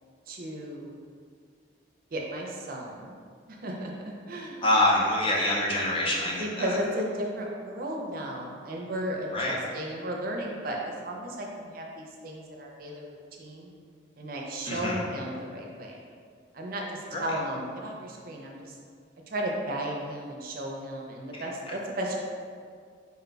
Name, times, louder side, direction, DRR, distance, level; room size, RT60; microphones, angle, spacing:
voice 1, 0.3-1.0 2.1-3.2 3.5-3.9 4.3-4.6 6.4-13.7 14.2-16.0 16.5-18.7 19.3-22.2, right 1 dB, 50° right, -1 dB, 0.5 m, -34 dB
voice 2, 4.6-6.8 9.3-9.6 14.6-15.0 17.1-17.3 21.3-21.5, left 1 dB, 25° left, -4 dB, 0.5 m, -26 dB
4.1 x 2.2 x 3.9 m, 2.1 s
head